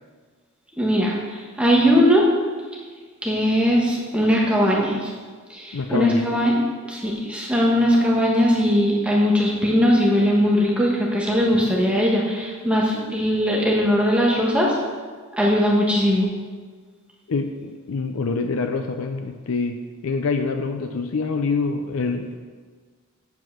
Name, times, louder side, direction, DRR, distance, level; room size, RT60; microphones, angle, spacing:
voice 1, 0.8-2.2 3.2-5.1 5.5-6.6 6.9-14.8 15.3-16.3, equal, 5° right, -4 dB, 1.4 m, -20 dB
voice 2, 5.7-6.3 17.3-19.8 20.0-22.4, left 4 dB, 75° left, 5 dB, 0.5 m, -25 dB
7.4 x 6.0 x 7.6 m, 1.6 s
head